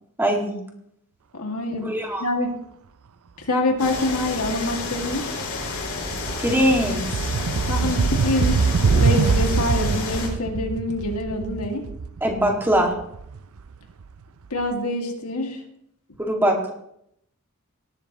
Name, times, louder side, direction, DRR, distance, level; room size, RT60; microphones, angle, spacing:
voice 1, 0.2-0.5 1.8-2.2 6.4-7.3 12.2-12.9 16.2-16.7, equal, 10° right, 1 dB, 2.0 m, -21 dB
voice 2, 1.3-1.9 2.2-2.5 3.5-5.3 7.7-11.8 14.5-15.6, left 2 dB, 85° left, 2 dB, 2.1 m, -25 dB
sound 1, 3.8-10.3, left 3 dB, 65° left, 4.7 m, -30 dB
sound 2, 4.6-4.8 5.1-14.0, right 5 dB, 70° right, 0.5 m, -24 dB
18.0 x 12.5 x 3.0 m, 0.74 s
head